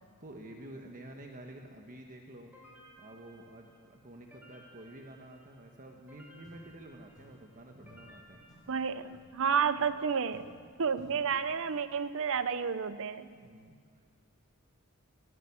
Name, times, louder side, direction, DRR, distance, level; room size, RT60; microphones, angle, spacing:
voice 1, 0.0-2.5 3.0-8.4 13.4-14.0, right 1 dB, 40° right, 2 dB, 1.4 m, -50 dB
sound 1, 2.5-9.5, right 1 dB, 10° right, 4.2 m, -59 dB
sound 2, 6.4-7.5 7.8-11.9, equal, 20° left, 4.6 m, -59 dB
voice 2, 8.7-10.5 10.8-13.3, right 6 dB, 60° right, 13 dB, 0.7 m, -31 dB
18.5 x 17.5 x 8.5 m, 2.1 s
head